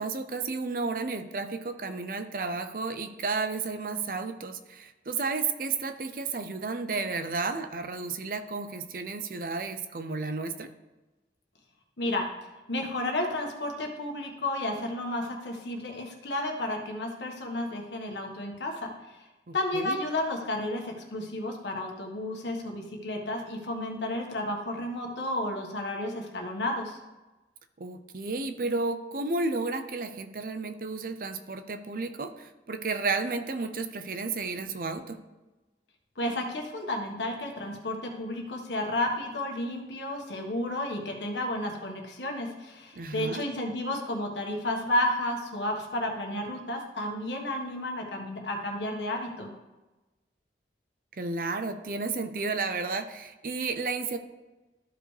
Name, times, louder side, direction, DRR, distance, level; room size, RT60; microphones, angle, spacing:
voice 1, 0.0-10.7 19.5-20.0 27.8-35.2 42.9-43.4 51.2-54.2, right 3 dB, 50° right, 9 dB, 0.6 m, -32 dB
voice 2, 12.0-12.3 12.7-19.2 19.5-27.0 36.2-49.5, left 1 dB, 85° left, 1 dB, 1.5 m, -32 dB
13.5 x 5.1 x 3.3 m, 1.1 s
head